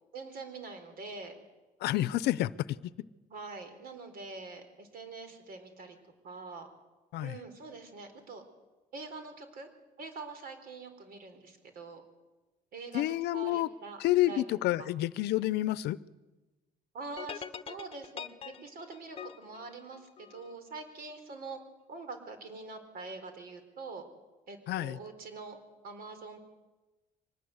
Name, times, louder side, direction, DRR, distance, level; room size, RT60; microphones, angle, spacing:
voice 1, 0.1-1.3 3.3-6.0 6.2-6.7 7.2-8.4 8.9-9.7 10.0-12.0 12.7-14.0 14.3-14.4 14.8-14.9 15.3-15.4 16.9-18.3 18.6-21.6 21.9-24.0 24.5-25.6 25.8-26.4, right 3 dB, 60° right, 8 dB, 4.4 m, -44 dB
voice 2, 1.8-2.5 7.1-7.4 12.9-13.7 14.0-16.0 24.7-25.0, left 15 dB, 80° left, 18 dB, 0.7 m, -29 dB
sound 1, 17.2-20.5, left 7 dB, 35° left, 1.0 m, -44 dB
24.5 x 19.5 x 8.1 m, 1.2 s
cardioid pair, 110°, 17 cm